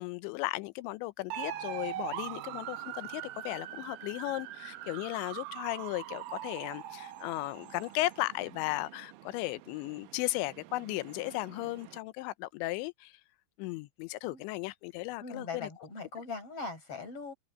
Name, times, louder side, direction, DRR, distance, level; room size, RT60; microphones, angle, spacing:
voice 1, 0.0-13.2 13.6-15.7, left 19 dB, 85° left, 3.0 m, -36 dB
sound 1, 1.3-12.0, right 13 dB, 90° right, 2.0 m, -43 dB
voice 2, 15.2-17.3, left 4 dB, 35° left, 6.0 m, -40 dB
omnidirectional pair, 5.1 m